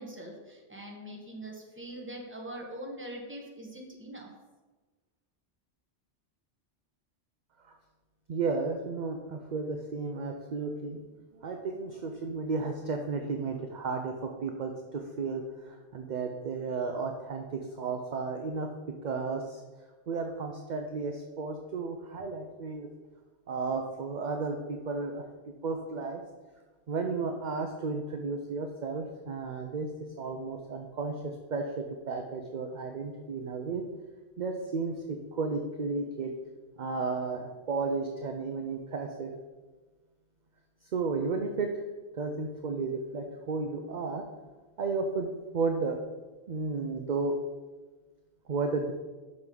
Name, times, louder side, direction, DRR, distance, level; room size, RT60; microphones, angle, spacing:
voice 1, 0.0-4.3, right 1 dB, 10° right, 0 dB, 1.1 m, -42 dB
voice 2, 8.3-18.7 19.0-19.6 20.1-22.9 23.5-25.2 25.6-26.2 26.9-29.9 30.2-33.8 34.4-36.3 36.8-39.3 40.9-41.7 42.1-44.2 44.8-45.3 45.5-46.0 46.5-47.3 48.5-48.9, right 4 dB, 50° right, 4 dB, 0.6 m, -33 dB
7.5 x 5.9 x 3.8 m, 1.2 s
omnidirectional pair, 1.2 m